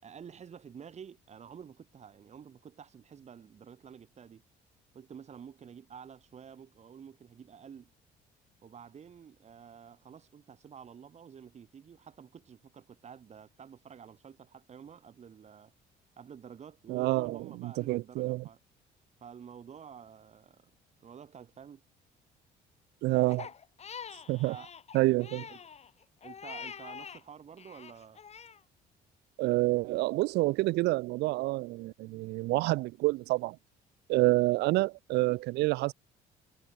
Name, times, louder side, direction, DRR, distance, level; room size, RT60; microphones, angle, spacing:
voice 1, 0.0-4.4 4.9-7.9 8.6-15.7 16.2-18.6 19.2-20.7 21.0-21.8 24.3-24.7 25.5-25.6 26.2-28.2, right 7 dB, 40° right, 5.0 m, -50 dB
voice 2, 16.9-18.4 23.0-23.5 24.3-24.5 24.9-25.5 29.4-33.6 34.1-35.9, right 20 dB, 85° right, 1.5 m, -28 dB
Crying sobbing, 23.3-27.2 27.6-28.6, left 7 dB, 40° left, 4.6 m, -45 dB
cardioid pair, 110°, 17 cm